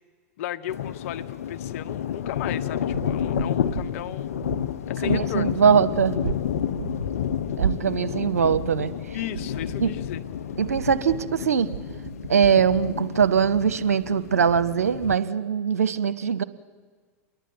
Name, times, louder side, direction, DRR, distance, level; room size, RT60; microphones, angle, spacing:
voice 1, 0.4-4.4 4.9-5.8 9.1-10.2, left 11 dB, 65° left, 9 dB, 1.1 m, -35 dB
sound 1, 0.7-15.2, left 9 dB, 80° left, 0.7 m, -30 dB
sound 2, 2.9-14.6, right 9 dB, 65° right, 1.6 m, -36 dB
voice 2, 5.0-6.1 7.6-8.9 9.8-9.9 10.6-11.7 12.3-16.4, right 7 dB, 90° right, 12 dB, 0.8 m, -21 dB
28.0 x 11.0 x 9.4 m, 1.5 s
hypercardioid pair, 95°, 8 cm